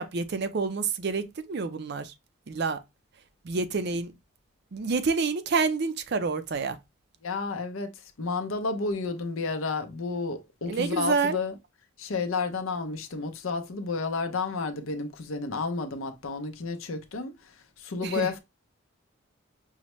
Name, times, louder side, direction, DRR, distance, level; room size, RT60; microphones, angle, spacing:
voice 1, 0.0-2.1 2.5-2.8 3.5-4.1 4.7-6.8 10.7-11.4 18.0-18.3, right 4 dB, 50° right, 0.4 m, -28 dB
voice 2, 7.2-7.9 8.2-11.5 12.0-17.3 17.8-18.4, left 4 dB, 75° left, 0.6 m, -31 dB
5.5 x 2.1 x 3.0 m
head